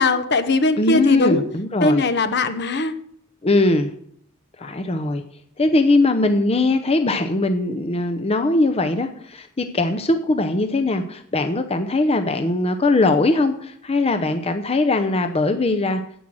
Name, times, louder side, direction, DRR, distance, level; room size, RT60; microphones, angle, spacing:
voice 1, 0.0-1.4 1.8-2.9 4.6-4.7, left 3 dB, 55° left, 10 dB, 0.9 m, -20 dB
voice 2, 0.8-2.0 3.4-3.9 4.6-5.2 5.6-16.0, left 2 dB, 30° left, 7 dB, 0.7 m, -20 dB
10.0 x 8.6 x 6.3 m, 0.66 s
head